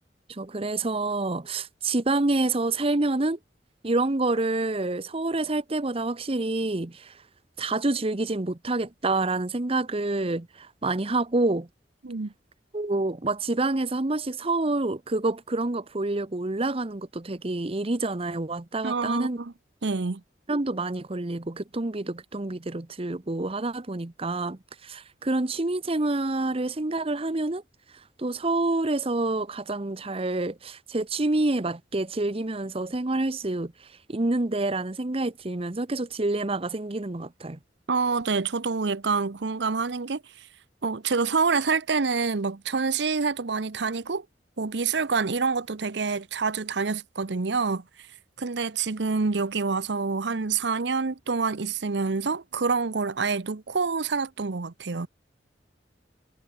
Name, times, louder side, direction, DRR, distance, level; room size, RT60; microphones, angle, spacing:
voice 1, 0.3-3.4 3.8-7.1 7.6-11.7 12.7-19.4 20.5-27.6 28.2-33.7 34.1-37.6, right 2 dB, 30° right, 0.9 m, -27 dB
voice 2, 18.8-19.5 19.8-20.2 37.9-40.5 40.8-44.2 44.6-47.8 48.4-55.1, right 4 dB, 70° right, 0.8 m, -27 dB
head